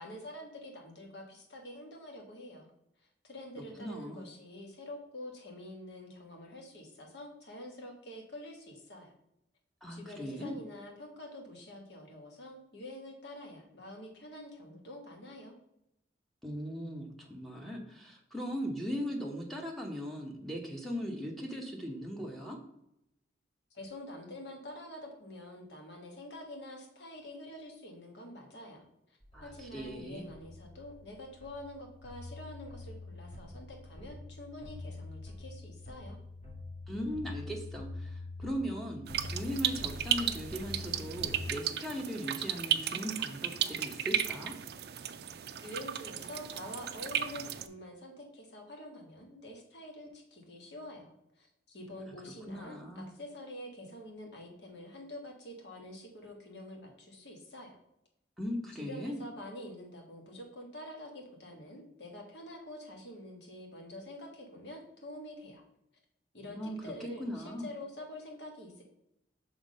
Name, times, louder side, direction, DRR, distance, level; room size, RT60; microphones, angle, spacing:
voice 1, 0.0-2.7 3.3-9.1 9.9-15.5 23.7-28.8 29.4-36.2 45.6-57.8 58.7-65.6 66.3-68.8, left 1 dB, 65° left, 1 dB, 1.6 m, -47 dB
voice 2, 3.6-4.3 9.8-10.6 16.4-22.6 29.3-30.3 36.9-44.5 52.5-53.1 58.4-59.2 66.5-67.6, equal, ahead, 0 dB, 0.8 m, -39 dB
sound 1, 29.2-41.5, left 2 dB, 30° left, 1.6 m, -45 dB
sound 2, 39.1-47.7, right 10 dB, 55° right, 0.4 m, -35 dB
5.8 x 3.6 x 5.2 m, 0.81 s
head